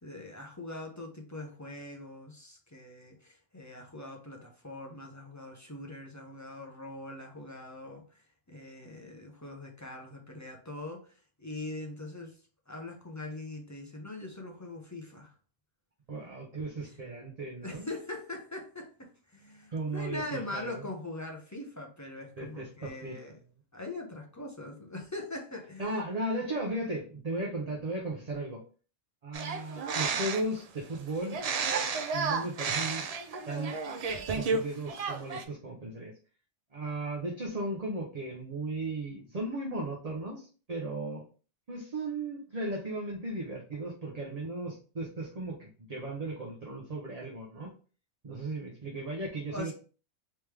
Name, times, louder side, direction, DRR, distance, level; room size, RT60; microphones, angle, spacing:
voice 1, 0.0-8.2 8.5-12.3 12.7-15.3 16.8-17.0 17.6-23.4 23.7-26.0 29.5-29.6 49.5-49.7, left 2 dB, 20° left, 1 dB, 0.4 m, -42 dB
voice 2, 16.1-17.9 19.7-20.9 22.4-23.2 25.8-28.6 29.2-31.4 32.1-33.1 33.5-33.8 34.3-36.1 36.7-41.2 41.7-47.7 48.2-49.7, right 2 dB, 35° right, -2 dB, 0.7 m, -36 dB
sound 1, 29.3-30.6 31.3-34.6 34.9-35.4, right 5 dB, 75° right, 0.3 m, -32 dB
3.4 x 3.1 x 3.2 m, 0.38 s
omnidirectional pair, 1.3 m